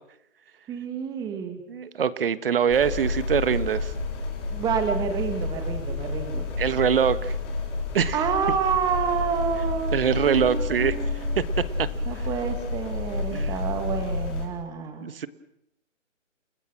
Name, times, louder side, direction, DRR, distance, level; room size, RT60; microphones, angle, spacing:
voice 1, 0.7-1.6 4.5-6.5 8.1-11.5 12.1-15.1, right 6 dB, 10° right, 7 dB, 2.0 m, -29 dB
voice 2, 1.7-3.9 6.6-7.3 7.9-8.2 9.9-10.9 11.4-11.5 11.8-11.9 13.3-13.6 15.0-15.3, right 7 dB, 45° right, 14 dB, 1.4 m, -23 dB
sound 1, 2.7-14.5, left 3 dB, 20° left, 4.7 m, -30 dB
30.0 x 20.0 x 6.2 m, 0.80 s
hypercardioid pair, 160°, 39 cm